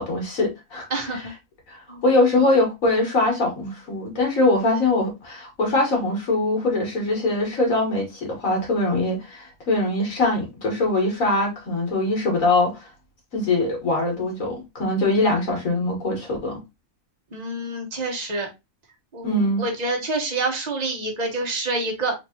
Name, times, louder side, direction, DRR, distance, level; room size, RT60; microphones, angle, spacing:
voice 1, 0.0-1.2 1.7-12.9 13.3-16.6 19.2-19.6, left 2 dB, 75° left, 2.2 m, -22 dB
voice 2, 0.9-1.3 1.9-2.0 17.3-18.5 19.1-22.1, right 2 dB, 35° right, 1.2 m, -27 dB
4.1 x 3.1 x 3.0 m
omnidirectional pair, 1.4 m